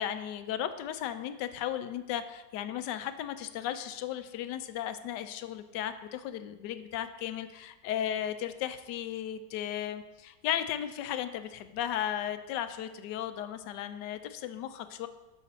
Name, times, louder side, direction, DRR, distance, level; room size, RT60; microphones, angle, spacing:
voice 1, 0.0-15.1, left 10 dB, 80° left, 10 dB, 1.2 m, -35 dB
12.5 x 5.1 x 4.1 m, 1.1 s
omnidirectional pair, 1.9 m